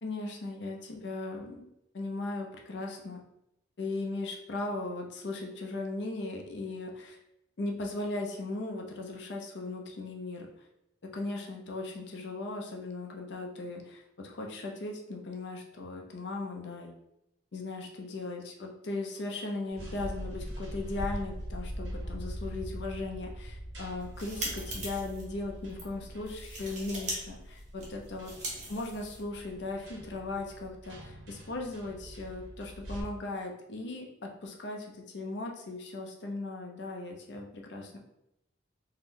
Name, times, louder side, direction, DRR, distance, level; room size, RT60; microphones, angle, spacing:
voice 1, 0.0-1.7 1.9-3.2 3.8-7.2 7.6-10.5 11.1-16.9 17.5-28.3 28.7-38.0, left 2 dB, 60° left, 1 dB, 0.5 m, -38 dB
sound 1, 19.7-33.0, equal, 60° right, 0.9 m, -42 dB
sound 2, 23.9-25.2 25.7-25.9 26.3-27.2 27.4-29.4, right 1 dB, 35° right, 0.7 m, -40 dB
2.6 x 2.3 x 3.5 m, 0.83 s
head